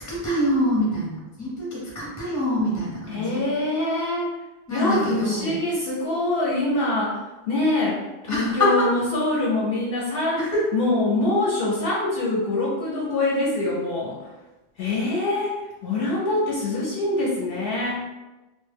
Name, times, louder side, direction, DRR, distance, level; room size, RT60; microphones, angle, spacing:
voice 1, 0.1-3.4 4.7-5.6 8.3-8.9 10.4-10.6, equal, 20° left, -5 dB, 0.6 m, -25 dB
voice 2, 3.1-4.3 4.7-7.2 7.5-10.4 10.7-14.3 14.8-15.5 15.8-18.0, left 2 dB, 65° left, -4 dB, 0.7 m, -24 dB
2.1 x 2.0 x 3.3 m, 1.1 s
omnidirectional pair, 1.1 m